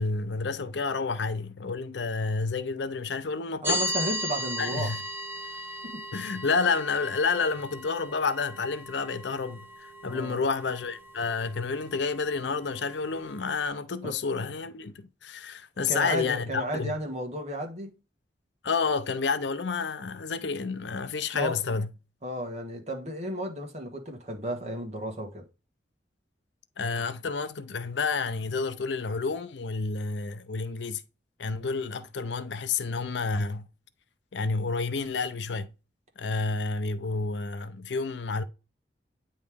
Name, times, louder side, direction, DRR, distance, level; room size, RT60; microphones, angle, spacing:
voice 1, 0.0-3.8 4.6-5.0 6.1-17.0 18.6-21.9 26.8-31.0 31.4-33.7 34.3-35.7 36.2-38.4, left 4 dB, 75° left, 0.6 m, -30 dB
sound 1, 3.6-13.7, equal, 15° right, 0.8 m, -37 dB
voice 2, 3.6-4.9 5.8-6.0 10.0-10.4 14.0-14.1 15.9-17.9 21.3-21.6 22.2-25.4, right 1 dB, 40° right, 1.6 m, -33 dB
9.3 x 3.2 x 3.5 m
head